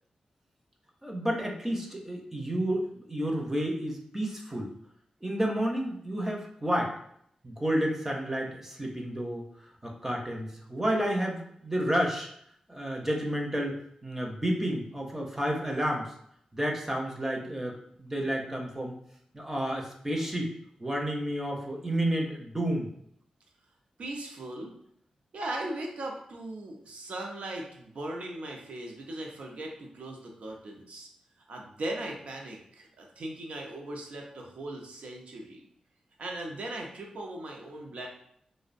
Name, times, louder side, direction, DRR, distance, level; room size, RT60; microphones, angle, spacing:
voice 1, 1.0-4.7 5.2-6.9 7.4-12.3 12.7-16.1 16.5-19.0 19.3-20.5 20.8-22.9, equal, 15° right, 0 dB, 0.5 m, -31 dB
voice 2, 24.0-24.7 25.3-31.1 31.5-35.6 36.2-38.1, right 1 dB, 70° right, 0 dB, 0.5 m, -38 dB
2.5 x 2.0 x 2.5 m, 0.68 s
cardioid pair, 60°, 2 cm